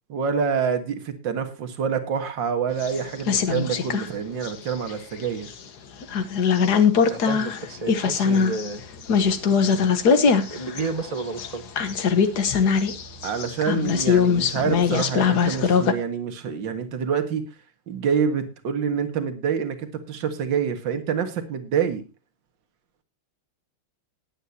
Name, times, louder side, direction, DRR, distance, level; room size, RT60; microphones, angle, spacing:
voice 1, 0.1-5.5 12.2-12.3 13.2-17.5 17.9-22.0, right 7 dB, 65° right, 8 dB, 2.3 m, -27 dB
sound 1, 2.8-4.1 4.4-5.5 6.0-15.9, left 6 dB, 55° left, 1.6 m, -22 dB
voice 2, 7.0-8.8 10.5-11.7, right 3 dB, 30° right, 11 dB, 0.7 m, -31 dB
19.5 x 9.0 x 2.8 m, 0.27 s
omnidirectional pair, 2.3 m